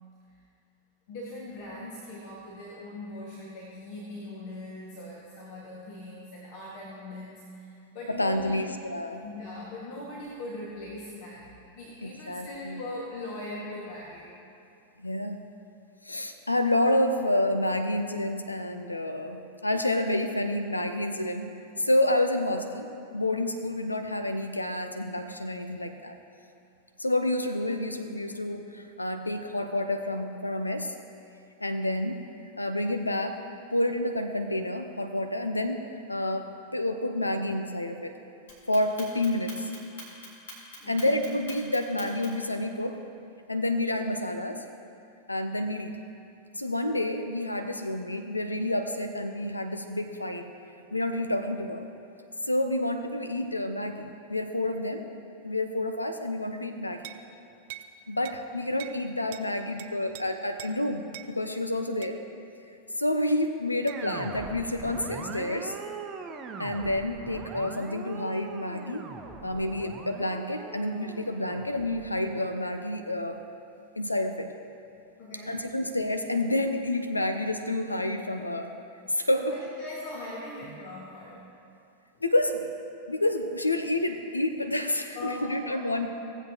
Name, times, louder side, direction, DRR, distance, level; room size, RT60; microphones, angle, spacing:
voice 1, 1.1-8.7 9.2-14.3 40.8-41.2 75.2-75.6 79.3-81.5 85.1-86.0, left 2 dB, 50° left, -5 dB, 1.6 m, -40 dB
voice 2, 8.1-9.2 12.0-12.8 15.0-15.5 16.1-21.5 21.8-26.1 27.0-30.9 31.6-32.2 32.6-33.4 33.7-38.1 38.7-39.7 40.9-43.0 43.5-44.6 45.3-46.0 46.6-50.5 50.9-51.8 52.4-55.0 55.4-57.1 58.1-62.2 63.0-65.7 66.6-69.1 69.4-73.4 74.0-74.5 75.5-78.7 79.1-79.5 82.2-82.7 83.1-86.1, left 1 dB, 85° left, 7 dB, 0.5 m, -29 dB
Clock, 38.5-42.5, left 2 dB, 65° left, 2.5 m, -44 dB
sound 1, 57.0-57.3 57.7-57.9 58.3-58.4 58.8-59.0 59.3-59.5 59.8-60.2 60.6-60.8 61.1-61.3 62.0-62.2 63.9-64.0, right 13 dB, 50° right, 0.5 m, -43 dB
sound 2, 63.9-73.2, right 5 dB, 25° right, 0.8 m, -42 dB
17.0 x 7.9 x 2.8 m, 2.6 s
figure-of-eight pair, 90°, 0 cm